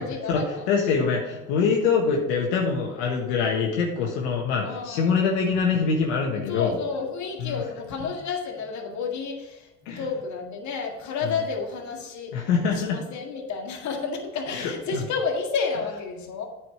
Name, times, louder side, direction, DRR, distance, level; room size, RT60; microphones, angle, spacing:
voice 1, 0.0-0.7 4.6-5.1 6.3-9.7 10.0-12.3 12.7-16.5, left 5 dB, 55° left, 1 dB, 1.9 m, -31 dB
voice 2, 0.7-6.7 7.4-7.6 9.8-10.0 11.2-11.3 12.3-13.0 14.5-15.0, left 5 dB, 85° left, 0 dB, 1.4 m, -24 dB
8.9 x 5.0 x 4.9 m, 1.0 s
supercardioid pair, 85°, 35 cm